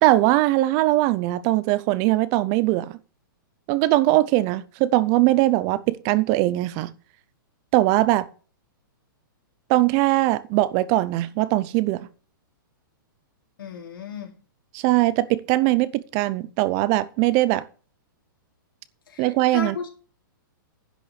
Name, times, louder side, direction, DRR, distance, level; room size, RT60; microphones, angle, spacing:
voice 1, 0.0-2.9 3.7-6.9 7.7-8.3 9.7-12.0 14.7-17.7 19.2-19.7, right 17 dB, 30° right, 0.5 m, -21 dB
voice 2, 13.6-14.4 19.1-19.9, left 6 dB, 80° left, 3.3 m, -35 dB
10.5 x 6.1 x 6.4 m
hypercardioid pair, 155°, 12 cm